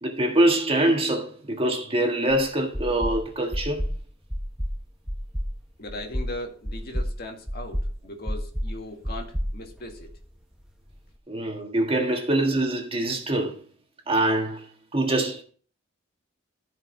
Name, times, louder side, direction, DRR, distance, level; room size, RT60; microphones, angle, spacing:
voice 1, 0.0-3.8 11.3-13.6 14.1-14.6 14.9-15.4, right 1 dB, 30° right, 1.6 m, -24 dB
sound 1, 2.3-2.4 2.7-3.2 3.5-4.0 4.3-4.8 5.1-5.5 5.9-6.3 6.6-7.1 7.5-7.9 8.3-8.7 9.0-10.2, equal, 5° right, 0.9 m, -29 dB
voice 2, 5.8-10.1, left 1 dB, 55° left, 1.8 m, -38 dB
14.0 x 5.1 x 3.9 m
head